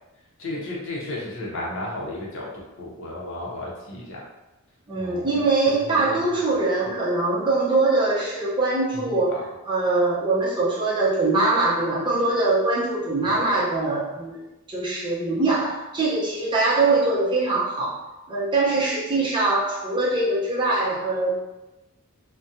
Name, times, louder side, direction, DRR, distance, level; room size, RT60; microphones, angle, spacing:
voice 1, 0.4-2.5 2.8-4.2 4.9-6.2 8.9-9.4 13.2-13.3, left 1 dB, 60° left, -4 dB, 0.7 m, -34 dB
voice 2, 4.9-9.4 9.7-14.4 14.7-18.0 18.3-21.4, right 2 dB, 20° right, -8 dB, 0.7 m, -22 dB
2.4 x 2.2 x 2.7 m, 1.0 s
head